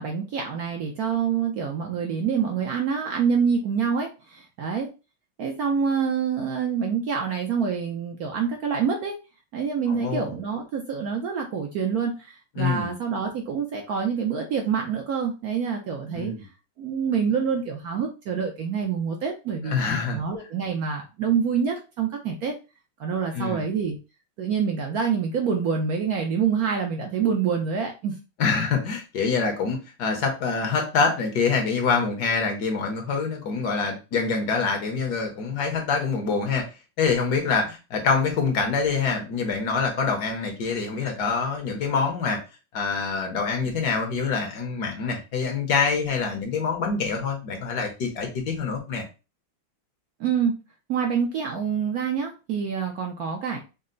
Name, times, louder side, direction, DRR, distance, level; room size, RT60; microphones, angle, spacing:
voice 1, 0.0-4.9 5.4-9.2 9.5-16.3 16.8-22.5 23.0-24.0 24.4-28.1 50.2-50.5 50.9-53.6, right 6 dB, 65° right, 2 dB, 0.9 m, -26 dB
voice 2, 9.9-10.3 12.6-12.9 16.1-16.4 19.6-20.2 23.3-23.6 28.4-36.7 37.0-42.4 42.7-49.0, left 5 dB, 60° left, 3 dB, 1.3 m, -25 dB
5.4 x 2.0 x 3.8 m, 0.30 s
omnidirectional pair, 2.1 m